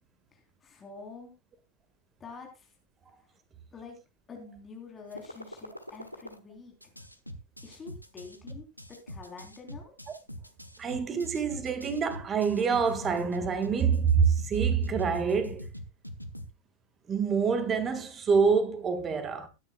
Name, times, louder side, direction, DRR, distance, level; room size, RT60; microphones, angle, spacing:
voice 1, 0.3-1.3 2.2-2.7 3.7-4.0 4.3-6.7 7.6-8.7 9.1-9.9, left 4 dB, 20° left, 3.6 m, -47 dB
sound 1, 5.1-6.4 6.8-16.5, left 1 dB, 90° left, 1.1 m, -42 dB
voice 2, 10.8-15.7 17.1-19.5, right 6 dB, 25° right, 1.7 m, -26 dB
21.0 x 9.8 x 2.3 m
figure-of-eight pair, 90°, 0 cm